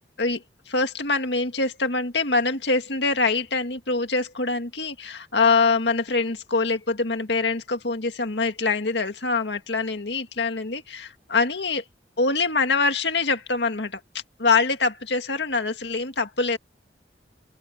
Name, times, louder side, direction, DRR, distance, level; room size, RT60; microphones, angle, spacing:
voice 1, 0.2-11.8 12.2-14.0 14.4-16.6, left 4 dB, 80° left, 2.0 m, -24 dB
open air
head